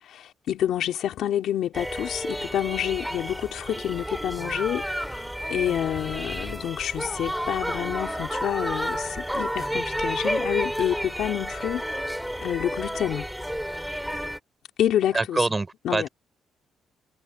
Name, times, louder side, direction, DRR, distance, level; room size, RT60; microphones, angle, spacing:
voice 1, 0.0-5.2 5.5-11.8 12.4-13.3 14.8-15.5 15.8-16.1, left 11 dB, 75° left, 3.5 m, -28 dB
sound 1, 1.7-14.4, equal, ahead, 2.1 m, -31 dB
voice 2, 15.1-16.1, right 3 dB, 20° right, 3.5 m, -25 dB
cardioid pair, 90°, 0 cm